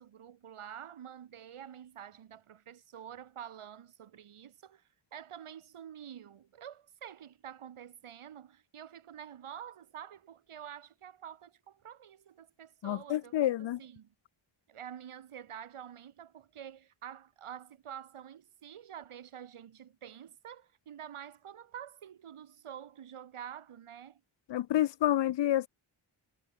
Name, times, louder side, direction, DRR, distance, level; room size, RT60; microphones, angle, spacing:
voice 1, 0.0-14.1 14.7-24.2, right 9 dB, 80° right, 1.6 m, -48 dB
voice 2, 12.8-13.8 24.5-25.7, left 12 dB, 60° left, 0.5 m, -28 dB
wide cardioid pair, 95°, 50 cm